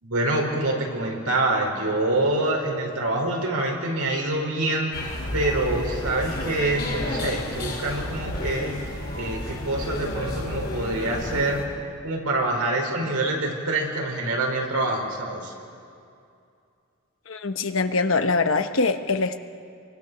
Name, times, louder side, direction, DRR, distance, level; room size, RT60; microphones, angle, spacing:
voice 1, 0.0-4.9 5.3-8.7 9.2-11.6 12.0-15.5, right 2 dB, 90° right, 1 dB, 4.9 m, -26 dB
sound 1, 4.9-11.6, left 1 dB, 45° left, 4.6 m, -31 dB
voice 2, 17.3-19.4, left 3 dB, 65° left, 8 dB, 1.1 m, -23 dB
26.5 x 24.0 x 6.9 m, 2.5 s
head